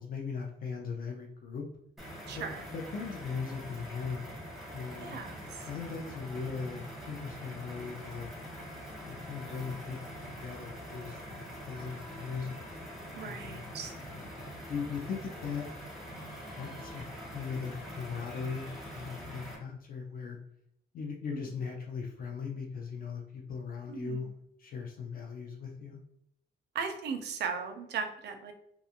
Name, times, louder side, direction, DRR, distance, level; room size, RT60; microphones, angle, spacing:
voice 1, 0.0-1.7 2.3-4.3 4.7-5.2 5.6-8.3 9.0-12.6 13.2-13.7 14.1-15.7 16.5-17.1 17.3-20.4 20.9-26.0, left 5 dB, 55° left, 1 dB, 0.4 m, -39 dB
sound 1, 2.0-19.6, equal, ahead, 0.6 m, -44 dB
voice 2, 2.3-2.6 5.0-5.6 13.1-13.9 21.3-21.4 23.9-24.3 26.7-28.5, right 6 dB, 70° right, 5 dB, 0.5 m, -37 dB
2.4 x 2.3 x 2.8 m, 0.74 s
wide cardioid pair, 170°, 18 cm